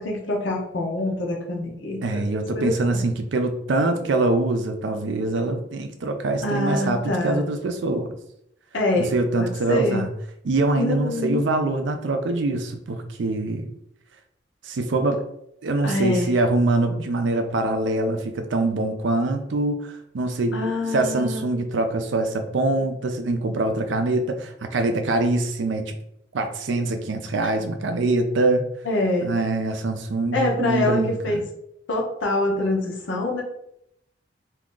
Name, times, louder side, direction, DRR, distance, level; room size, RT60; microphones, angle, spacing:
voice 1, 0.0-2.3 2.5-3.0 6.4-7.4 8.7-9.1 9.4-10.0 10.8-11.5 15.8-16.3 20.5-21.4 27.4-27.5 28.8-29.3 30.3-31.4 31.9-33.4, left 2 dB, 70° left, 0 dB, 0.8 m, -25 dB
voice 2, 2.0-8.1 9.0-10.1 10.4-13.7 14.6-15.2 15.6-20.6 20.9-25.9 26.3-28.6 29.2-31.4, right 2 dB, 65° right, 6 dB, 0.4 m, -24 dB
2.7 x 2.4 x 3.7 m, 0.76 s
head